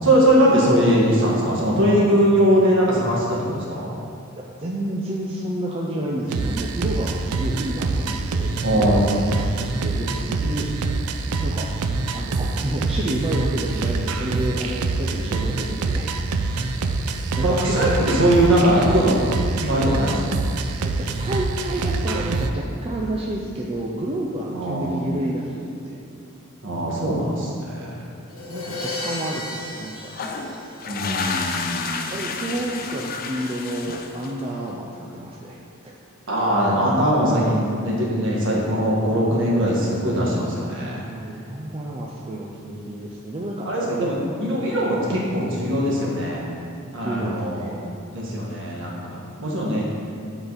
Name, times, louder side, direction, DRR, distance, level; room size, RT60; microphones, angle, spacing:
voice 1, 0.0-3.9 8.6-9.1 17.4-19.2 19.6-20.2 24.5-25.1 26.6-28.0 30.9-31.9 36.3-41.0 43.6-46.4 46.9-47.7 48.1-49.8, equal, 60° right, -4 dB, 1.5 m, -21 dB
voice 2, 4.6-9.0 9.6-10.7 11.4-11.7 12.1-16.1 17.4-17.9 20.8-26.0 28.5-29.4 29.8-30.1 32.1-35.6 35.8-35.9 41.1-43.7 47.0-47.8, right 1 dB, 25° right, -3 dB, 0.5 m, -29 dB
sound 1, 6.3-22.5, right 3 dB, 90° right, 0.4 m, -25 dB
Crash cymbal, 28.3-31.2, left 2 dB, 70° left, 1.5 m, -34 dB
sound 2, 30.1-34.7, left 4 dB, 45° left, 0.5 m, -30 dB
9.5 x 3.9 x 4.0 m, 2.5 s
head